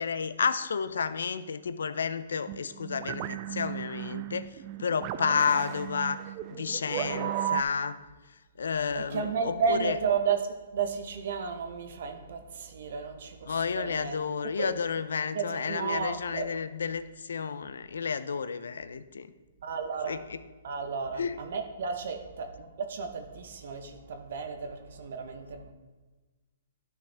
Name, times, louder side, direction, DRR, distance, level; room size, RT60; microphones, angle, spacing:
voice 1, 0.0-6.2 6.5-8.0 8.6-10.0 13.5-19.3 20.1-20.4 21.2-21.4, left 6 dB, 85° left, 13 dB, 0.5 m, -31 dB
sound 1, 2.5-7.6, right 12 dB, 35° right, 0.3 m, -35 dB
voice 2, 8.9-14.2 14.6-14.7 15.3-16.4 19.6-20.2 20.6-25.7, right 6 dB, 65° right, 6 dB, 0.9 m, -33 dB
11.0 x 6.0 x 3.4 m, 1.2 s
hypercardioid pair, 150°, 0 cm